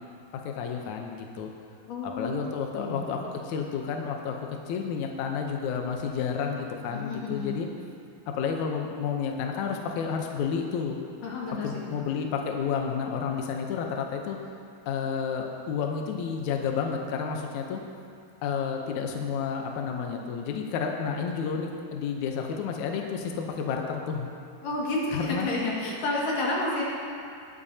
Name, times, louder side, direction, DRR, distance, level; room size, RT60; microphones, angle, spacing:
voice 1, 0.3-1.5 2.0-4.4 4.7-7.7 8.4-11.0 11.6-14.4 14.9-17.8 18.4-24.3 25.1-25.5, left 6 dB, 80° left, 2 dB, 1.7 m, -31 dB
voice 2, 1.9-3.1 6.9-7.6 11.2-12.0 24.6-26.8, left 2 dB, 60° left, -4 dB, 3.4 m, -31 dB
20.0 x 10.5 x 2.8 m, 2.4 s
omnidirectional pair, 4.5 m